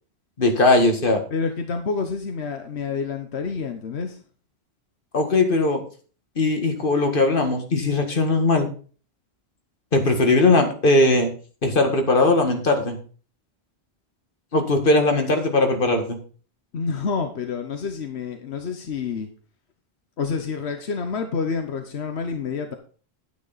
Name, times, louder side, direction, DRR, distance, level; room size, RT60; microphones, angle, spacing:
voice 1, 0.4-1.2 5.1-5.8 6.4-8.7 9.9-11.3 11.6-13.0 14.5-16.2, left 2 dB, 55° left, 4 dB, 2.0 m, -19 dB
voice 2, 1.3-4.2 16.7-19.3 20.2-22.8, left 5 dB, 85° left, 6 dB, 1.3 m, -28 dB
9.6 x 9.3 x 4.1 m, 0.39 s
omnidirectional pair, 1.1 m